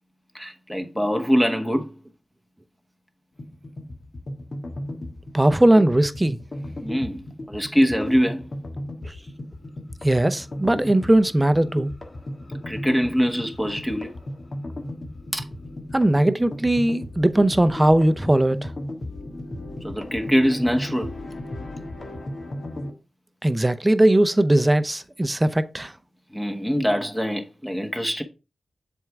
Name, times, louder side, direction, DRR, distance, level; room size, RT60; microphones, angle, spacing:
voice 1, 0.3-1.9 6.8-8.5 12.7-14.1 15.3-15.4 19.8-21.1 26.3-28.2, equal, 5° left, 1.1 m, -23 dB
sound 1, 3.4-22.9, left 1 dB, 55° left, 1.5 m, -36 dB
voice 2, 5.3-6.4 9.0-9.1 10.0-11.9 15.9-18.7 23.4-25.9, right 1 dB, 20° right, 0.6 m, -19 dB
7.5 x 3.6 x 4.6 m
cardioid pair, 60°, 0 cm